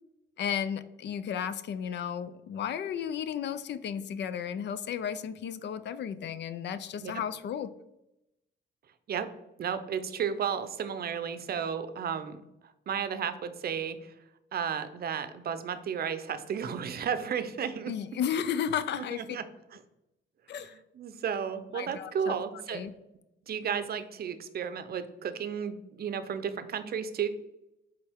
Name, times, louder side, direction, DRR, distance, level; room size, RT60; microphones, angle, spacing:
voice 1, 0.4-7.7 17.9-19.2 20.5-20.8 21.7-22.4 22.7-22.9, left 8 dB, 60° left, 14 dB, 0.4 m, -33 dB
voice 2, 9.6-12.4 12.9-14.1 14.5-17.9 19.1-19.4 20.6-20.7 20.9-22.9 23.5-27.3, right 7 dB, 50° right, 10 dB, 0.6 m, -33 dB
8.0 x 3.3 x 3.5 m, 0.90 s
cardioid pair, 90°, 20 cm